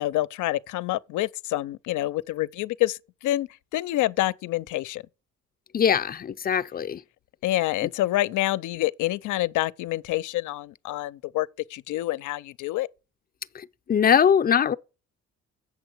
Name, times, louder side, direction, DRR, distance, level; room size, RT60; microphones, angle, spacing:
voice 1, 0.0-5.0 7.4-12.9, left 16 dB, 80° left, 0.5 m, -27 dB
voice 2, 5.7-7.0 13.9-14.7, left 8 dB, 30° left, 0.5 m, -21 dB
8.0 x 7.0 x 4.5 m
cardioid pair, 90°, 30 cm